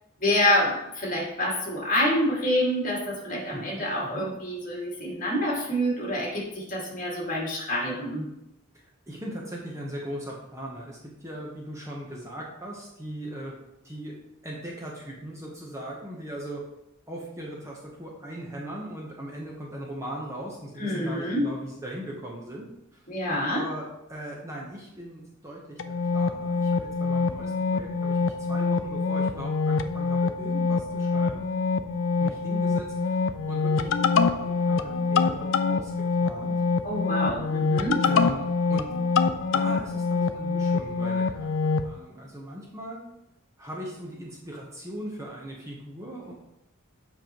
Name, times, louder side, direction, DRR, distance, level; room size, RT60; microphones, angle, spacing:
voice 1, 0.2-8.3 20.8-21.5 23.1-23.6 36.8-38.0, left 1 dB, 40° left, -4 dB, 2.2 m, -27 dB
voice 2, 3.5-4.3 8.7-13.5 13.8-14.2 14.4-16.6 17.1-22.7 22.9-23.1 23.5-25.8 26.1-31.4 32.2-35.9 36.2-36.6 38.0-38.9 39.5-43.0 43.6-46.3, right 1 dB, 15° right, -3 dB, 0.9 m, -39 dB
sound 1, 25.8-41.9, left 4 dB, 65° left, 0.4 m, -25 dB
7.6 x 5.4 x 3.0 m, 0.86 s
head